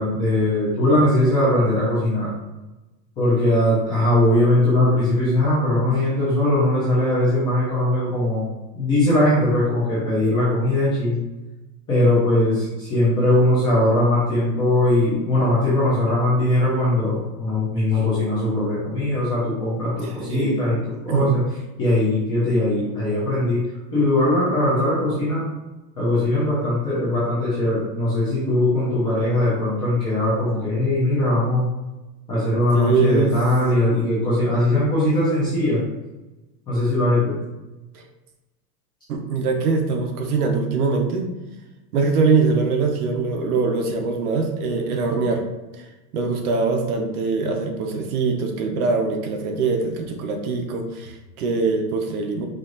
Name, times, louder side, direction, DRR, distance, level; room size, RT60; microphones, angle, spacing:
voice 1, 0.0-2.3 3.2-8.4 8.7-11.2 11.9-20.8 21.0-21.4 21.8-23.6 23.9-25.5 26.0-31.7 32.3-35.8 36.7-37.4, left 1 dB, 10° left, -10 dB, 0.5 m, -20 dB
voice 2, 20.2-20.6 21.1-21.3 32.7-33.4 37.9-38.0 39.1-41.3 41.9-45.4 45.7-45.9 46.1-52.5, right 4 dB, 60° right, 4 dB, 0.9 m, -22 dB
4.9 x 2.4 x 3.8 m, 1.1 s
supercardioid pair, 170°, 49 cm